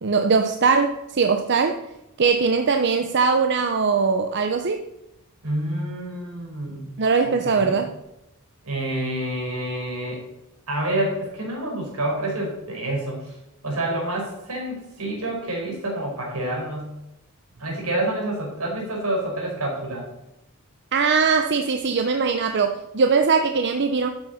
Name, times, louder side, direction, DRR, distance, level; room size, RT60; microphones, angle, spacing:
voice 1, 0.0-1.8 2.2-4.8 7.0-7.9 20.9-24.1, right 5 dB, 55° right, 7 dB, 0.7 m, -21 dB
voice 2, 5.4-6.8 7.2-7.8 8.6-10.2 10.7-13.4 13.6-16.9 17.6-20.1, right 1 dB, 80° right, -1 dB, 5.0 m, -28 dB
12.5 x 7.7 x 5.7 m, 0.90 s
head